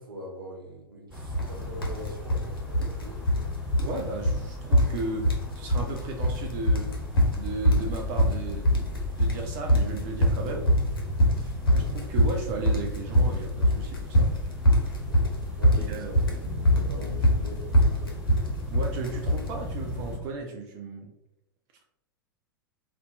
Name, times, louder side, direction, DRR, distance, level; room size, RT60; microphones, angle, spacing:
voice 1, 0.0-3.5 10.3-10.6 11.2-11.6 15.1-18.3, equal, 75° right, 0 dB, 0.7 m, -43 dB
sound 1, 1.1-20.2, left 1 dB, 5° right, 1.1 m, -36 dB
sound 2, 1.3-1.5 1.8-2.4 2.7-3.5 3.7-4.0 4.2-4.4 4.7-5.5 5.7-6.4 6.7-19.5, equal, 80° left, 0.6 m, -22 dB
voice 2, 3.8-6.9 7.4-8.9 9.2-10.6 11.7-14.3 15.7-16.2 18.7-21.1, right 3 dB, 40° right, 2 dB, 0.4 m, -35 dB
2.6 x 2.1 x 2.5 m, 0.81 s
figure-of-eight pair, 95°, 12 cm